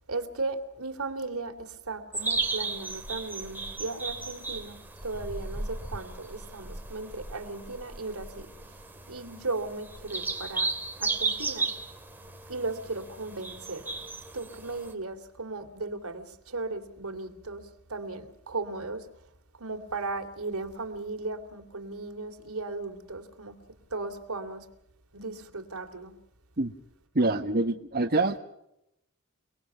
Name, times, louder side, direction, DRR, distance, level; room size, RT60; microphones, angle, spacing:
voice 1, 0.1-8.5 9.1-10.7 11.0-11.7 12.5-13.9 14.3-19.1 19.6-23.5 23.9-24.6 25.1-26.1, right 3 dB, 80° right, 2.9 m, -36 dB
sound 1, 2.1-14.9, right 3 dB, 10° right, 2.5 m, -35 dB
voice 2, 27.1-28.4, right 2 dB, 45° right, 1.3 m, -25 dB
30.0 x 19.5 x 5.8 m
head